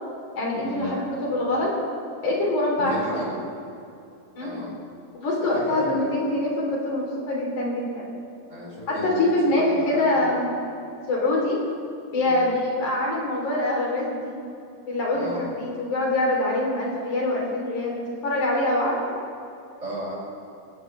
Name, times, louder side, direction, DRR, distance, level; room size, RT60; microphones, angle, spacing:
voice 1, 0.4-1.7 2.2-3.2 4.4-4.6 5.1-8.1 8.9-10.5 11.1-11.6 12.1-14.4 14.9-15.3 15.6-19.2, left 1 dB, 75° left, -3 dB, 4.9 m, -24 dB
voice 2, 2.8-3.4 4.4-4.8 5.4-6.0 8.5-10.3 12.2-12.5 15.1-15.5 19.8-20.2, equal, 25° right, -6 dB, 5.5 m, -34 dB
28.0 x 14.0 x 3.3 m, 2.7 s
omnidirectional pair, 3.5 m